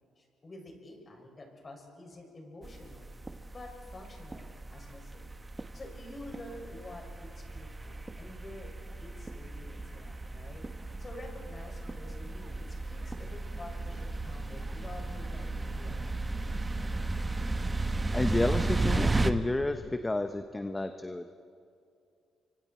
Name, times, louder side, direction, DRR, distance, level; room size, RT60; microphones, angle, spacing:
voice 1, 0.0-3.1 3.5-5.3 5.7-8.7 9.0-10.6 11.0-16.2, left 1 dB, 30° left, 1 dB, 6.1 m, -48 dB
sound 1, 2.6-19.3, right 2 dB, 20° right, 1.0 m, -35 dB
voice 2, 18.1-21.3, left 2 dB, 15° left, 8 dB, 0.9 m, -30 dB
30.0 x 24.5 x 4.4 m, 2.4 s
cardioid pair, 90°, 0 cm